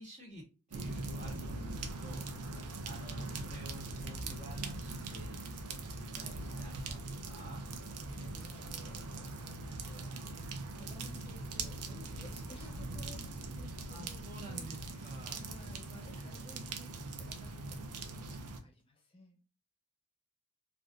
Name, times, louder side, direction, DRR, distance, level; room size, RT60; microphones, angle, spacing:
voice 1, 0.0-2.6 2.8-5.4 5.6-7.6 13.9-15.4, right 1 dB, 30° right, 0 dB, 1.0 m, -51 dB
sound 1, 0.7-18.6, right 3 dB, 85° right, 0.6 m, -41 dB
voice 2, 7.9-19.4, left 1 dB, 25° left, 2 dB, 0.8 m, -56 dB
3.2 x 2.5 x 2.4 m, 0.32 s
head